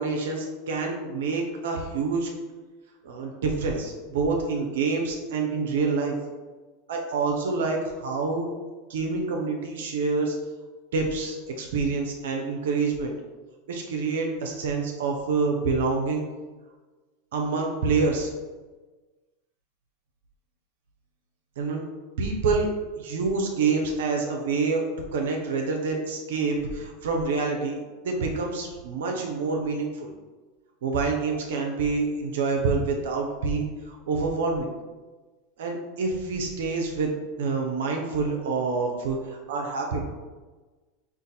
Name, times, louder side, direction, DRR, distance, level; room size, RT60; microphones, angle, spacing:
voice 1, 0.0-2.3 3.0-6.2 6.9-8.5 8.9-10.4 10.9-13.1 13.7-16.3 17.3-18.3 21.6-21.8 22.2-22.7 23.0-24.8 25.1-27.8 28.0-30.1 30.8-34.7 35.6-37.1 37.4-40.0, right 4 dB, 75° right, 1 dB, 0.5 m, -27 dB
2.6 x 2.4 x 3.9 m, 1.3 s
hypercardioid pair, 95°, 0 cm